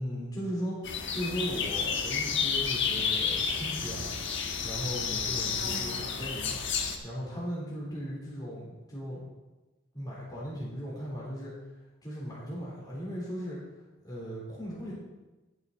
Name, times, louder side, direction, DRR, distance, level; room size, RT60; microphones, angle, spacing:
voice 1, 0.0-4.1 4.6-6.5 7.0-9.3 9.9-11.5 12.0-13.6 14.0-14.9, equal, 20° left, -6 dB, 3.6 m, -37 dB
sound 1, 0.8-7.0, left 6 dB, 65° left, 1.3 m, -31 dB
18.5 x 6.2 x 4.0 m, 1.1 s
head